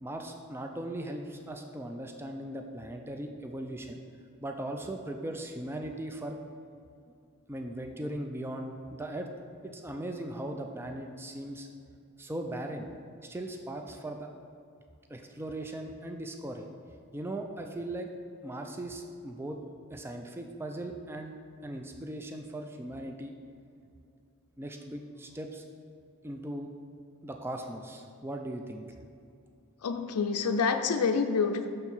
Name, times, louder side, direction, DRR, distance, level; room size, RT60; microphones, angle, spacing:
voice 1, 0.0-4.0 4.4-6.4 7.5-9.3 9.6-11.7 12.2-12.9 13.2-14.3 15.1-16.7 17.1-18.1 18.4-19.6 19.9-21.4 21.6-23.3 24.6-25.6 26.2-26.7 27.2-28.9, right 1 dB, 10° right, 4 dB, 0.3 m, -38 dB
voice 2, 29.8-31.7, left 5 dB, 85° left, 6 dB, 0.4 m, -27 dB
6.5 x 4.5 x 5.5 m, 2.5 s
head